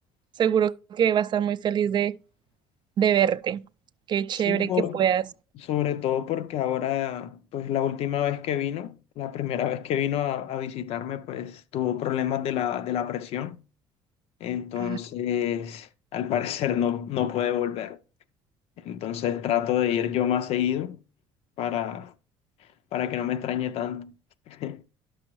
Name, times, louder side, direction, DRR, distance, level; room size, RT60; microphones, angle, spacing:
voice 1, 0.4-2.1 3.0-3.6 4.1-5.2 14.8-15.0, right 9 dB, 45° right, 0.4 m, -24 dB
voice 2, 4.3-5.0 5.6-13.6 14.4-18.0 18.8-21.0 21.6-22.1 22.9-24.1 24.5-24.8, left 10 dB, 65° left, 0.5 m, -28 dB
11.0 x 6.2 x 3.0 m
supercardioid pair, 95°, 11 cm